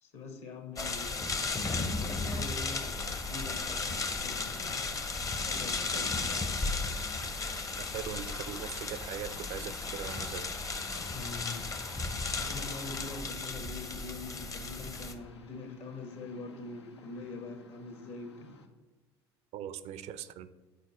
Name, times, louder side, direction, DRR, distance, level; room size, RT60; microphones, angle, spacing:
voice 1, 0.0-1.7 1.9-4.8 5.3-6.6 11.1-11.6 12.4-18.5, left 3 dB, 55° left, 5 dB, 1.3 m, -44 dB
sound 1, 0.7-18.7, left 4 dB, 90° left, 0.6 m, -50 dB
sound 2, 0.8-15.1, left 3 dB, 25° left, 0.7 m, -35 dB
voice 2, 7.9-10.5 19.5-20.5, right 9 dB, 55° right, 14 dB, 0.4 m, -40 dB
6.7 x 4.2 x 4.1 m, 1.2 s
hypercardioid pair, 70°, 14 cm